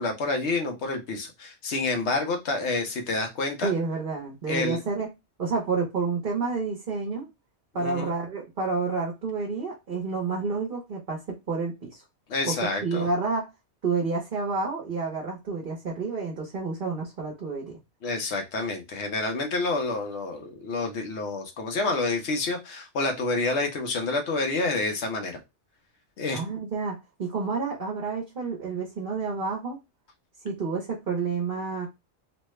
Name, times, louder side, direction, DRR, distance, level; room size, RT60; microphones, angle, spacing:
voice 1, 0.0-3.7 4.5-4.8 7.8-8.1 12.3-13.1 18.0-25.4 26.2-26.4, left 3 dB, 75° left, 1.1 m, -28 dB
voice 2, 3.6-5.1 5.4-7.3 7.7-12.0 12.5-12.6 12.8-13.5 13.8-17.8 26.3-29.8 30.4-31.9, right 4 dB, 50° right, 1.1 m, -29 dB
3.2 x 2.2 x 3.1 m
omnidirectional pair, 1.2 m